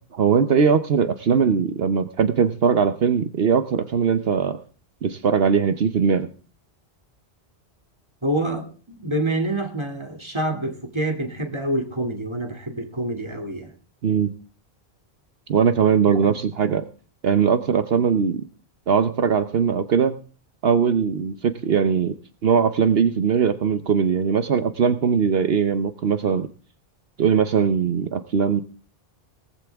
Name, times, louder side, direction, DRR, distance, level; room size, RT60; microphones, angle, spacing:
voice 1, 0.1-4.6 5.0-6.3 14.0-14.3 15.5-16.8 17.2-18.4 18.9-20.1 20.6-22.1 22.4-26.5 27.2-28.6, right 6 dB, 70° right, 1.1 m, -20 dB
voice 2, 8.2-13.7 16.1-16.2, right 1 dB, 25° right, 2.7 m, -27 dB
18.5 x 15.0 x 3.5 m
omnidirectional pair, 1.0 m